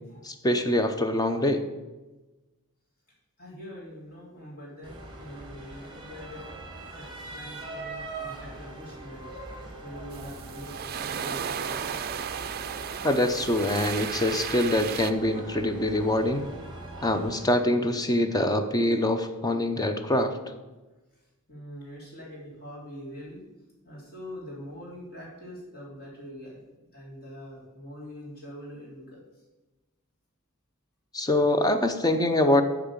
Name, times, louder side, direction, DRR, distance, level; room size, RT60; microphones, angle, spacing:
voice 1, 0.2-1.6 13.0-16.5 17.0-20.5 31.1-32.6, left 1 dB, 15° left, 8 dB, 0.6 m, -24 dB
voice 2, 3.4-6.5 7.0-9.3 9.8-12.0 21.1-21.2 21.5-23.4 23.8-26.6 26.9-29.4, equal, 45° left, -5 dB, 3.6 m, -43 dB
sound 1, 4.8-17.4, right 2 dB, 20° right, 1.5 m, -42 dB
sound 2, 10.1-15.1, right 8 dB, 45° right, 0.4 m, -34 dB
8.7 x 4.8 x 7.3 m, 1.2 s
head